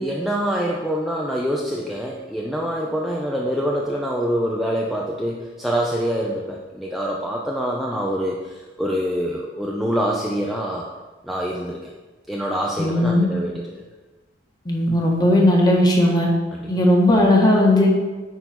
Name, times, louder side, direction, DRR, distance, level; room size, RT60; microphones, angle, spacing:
voice 1, 0.0-10.9 11.2-11.9 12.3-13.7 16.5-16.6, equal, ahead, -3 dB, 0.6 m, -25 dB
voice 2, 12.8-13.2 14.6-16.3 16.7-17.9, left 1 dB, 20° left, -2 dB, 1.5 m, -17 dB
9.0 x 4.0 x 6.1 m, 1.2 s
head